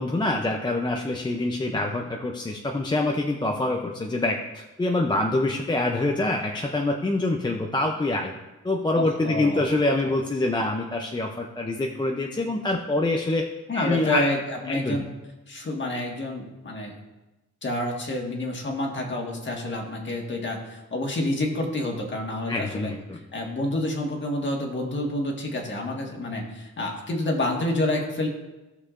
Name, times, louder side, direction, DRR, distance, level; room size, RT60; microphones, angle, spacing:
voice 1, 0.0-8.3 8.6-13.5 13.7-14.3 14.7-15.0 22.5-23.2, left 2 dB, 15° left, 1 dB, 0.5 m, -25 dB
voice 2, 8.9-9.7 13.7-15.1 15.5-17.0 17.6-22.9 23.3-28.3, left 1 dB, 35° left, 1 dB, 1.5 m, -28 dB
17.0 x 6.5 x 2.5 m, 1.1 s
wide cardioid pair, 165°, 31 cm